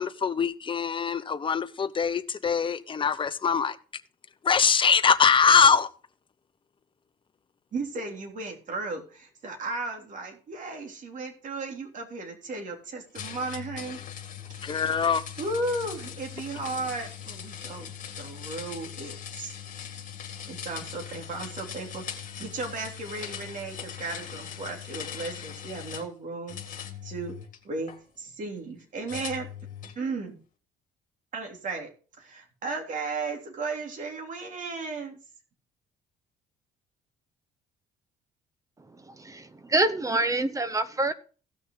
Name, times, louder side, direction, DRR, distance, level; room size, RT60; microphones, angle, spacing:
voice 1, 0.0-3.8 4.4-5.9 14.6-15.2, left 6 dB, 30° left, 11 dB, 0.9 m, -23 dB
voice 2, 7.7-14.0 14.6-15.0 15.4-19.6 20.5-26.6 27.0-27.4 27.6-29.5 29.9-30.4 31.3-31.9 32.2-35.2, right 3 dB, 50° right, 3 dB, 3.3 m, -35 dB
sound 1, 13.1-26.1 26.5-28.0 29.1-30.0, left 9 dB, 50° left, 2.1 m, -40 dB
voice 3, 39.1-41.1, right 2 dB, 20° right, 14 dB, 0.8 m, -26 dB
16.5 x 6.3 x 3.9 m, 0.37 s
cardioid pair, 110°, 17 cm